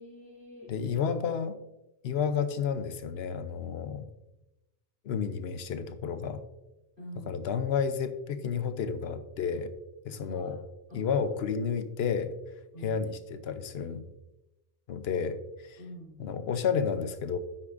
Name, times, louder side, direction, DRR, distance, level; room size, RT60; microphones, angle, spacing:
voice 1, 0.0-0.7 7.0-7.5 10.1-10.6 10.9-11.2 12.7-13.1 15.8-16.2, equal, 50° left, -11 dB, 3.7 m, -46 dB
voice 2, 0.7-1.6 2.0-4.1 5.0-6.4 7.3-9.7 10.0-10.6 10.9-12.3 12.8-14.0 14.9-15.8 16.2-17.4, left 6 dB, 65° left, 11 dB, 0.9 m, -31 dB
10.0 x 8.3 x 2.5 m, 0.97 s
omnidirectional pair, 1.2 m